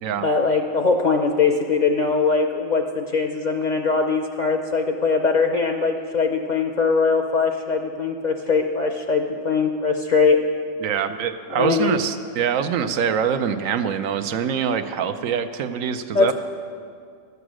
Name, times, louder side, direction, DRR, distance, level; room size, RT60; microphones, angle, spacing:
voice 1, 0.2-10.4 11.5-12.0 16.1-16.3, left 4 dB, 50° left, 4 dB, 0.5 m, -21 dB
voice 2, 10.8-16.3, right 7 dB, 85° right, 9 dB, 1.0 m, -24 dB
12.0 x 8.2 x 6.2 m, 2.2 s
omnidirectional pair, 1.4 m